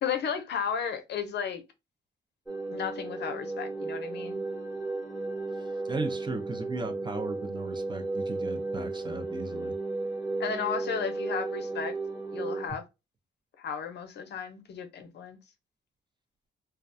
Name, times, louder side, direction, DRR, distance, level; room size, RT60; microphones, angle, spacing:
voice 1, 0.0-1.6 2.7-4.4 10.4-11.9 12.3-12.8 13.6-15.4, left 7 dB, 60° left, 0.6 m, -34 dB
sound 1, 2.5-12.7, right 3 dB, 5° right, 1.0 m, -34 dB
voice 2, 5.9-9.7, right 3 dB, 25° right, 0.5 m, -36 dB
2.3 x 2.1 x 2.5 m
cardioid pair, 90°, 20 cm